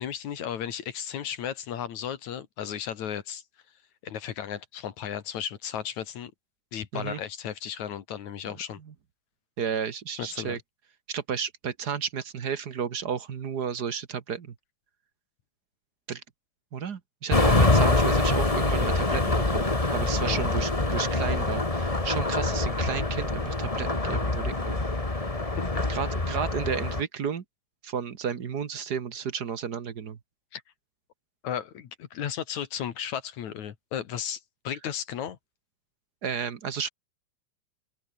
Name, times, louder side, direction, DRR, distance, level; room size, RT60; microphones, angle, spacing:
voice 1, 0.0-3.4 4.0-6.3 6.7-8.8 10.2-10.6 20.2-20.4 30.5-30.6 31.4-35.4, left 9 dB, 75° left, 3.1 m, -34 dB
voice 2, 9.6-10.6 11.1-14.5 16.1-16.2 16.7-24.8 25.9-27.4 27.8-30.2 36.2-36.9, right 7 dB, 45° right, 1.4 m, -32 dB
sound 1, 17.3-27.0, left 2 dB, 15° left, 1.7 m, -25 dB
open air
omnidirectional pair, 3.3 m